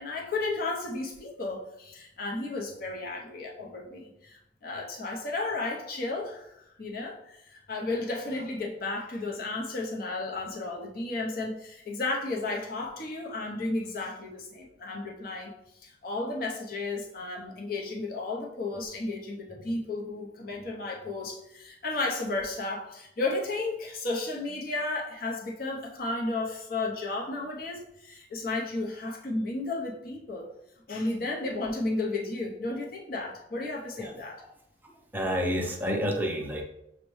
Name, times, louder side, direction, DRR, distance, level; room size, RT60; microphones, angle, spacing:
voice 1, 0.0-30.5 30.9-34.4, left 2 dB, 55° left, -1 dB, 0.7 m, -33 dB
voice 2, 34.0-34.5 34.8-36.6, equal, 10° right, 1 dB, 0.5 m, -30 dB
6.2 x 2.1 x 3.1 m, 0.81 s
head